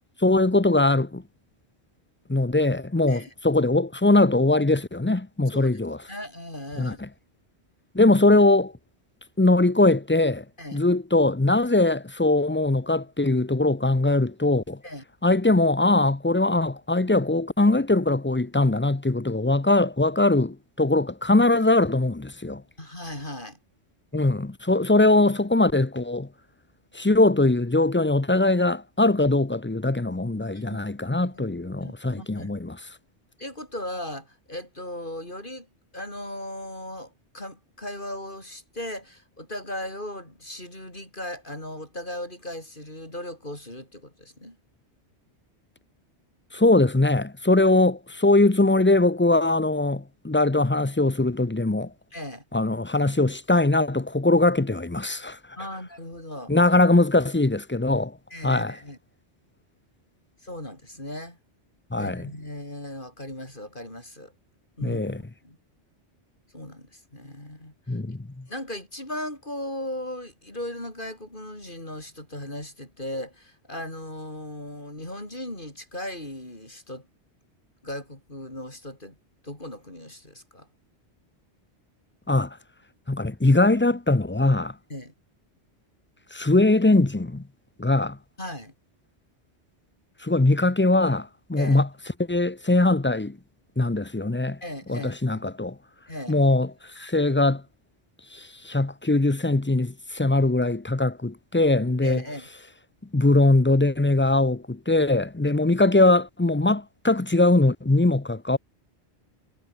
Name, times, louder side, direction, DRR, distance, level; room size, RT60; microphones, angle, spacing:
voice 1, 0.2-1.2 2.3-6.0 6.8-7.1 7.9-8.7 9.4-10.4 10.7-14.8 15.2-22.6 24.1-26.3 26.9-32.8 46.5-51.9 52.5-55.4 56.5-58.1 58.4-58.7 61.9-62.3 64.8-65.2 67.9-68.5 82.3-82.6 83.1-84.7 86.3-87.4 87.8-88.2 90.2-91.9 92.2-93.4 93.8-94.6 94.9-95.8 96.3-96.7 97.0-97.6 98.3-102.2 103.1-108.6, left 2 dB, 15° left, 0.6 m, -21 dB
voice 2, 6.1-7.0 10.6-10.8 14.8-15.0 22.8-23.6 30.5-30.6 31.1-31.4 31.8-32.5 33.4-35.7 35.9-44.6 52.1-52.4 55.6-56.5 58.3-59.0 60.4-61.4 62.0-64.3 64.8-65.6 66.5-68.0 68.5-77.1 77.8-79.2 79.4-80.7 84.9-85.1 88.4-88.7 91.6-91.8 94.6-95.5 96.1-96.4 102.0-102.5, left 1 dB, 50° left, 6.9 m, -37 dB
omnidirectional pair, 1.1 m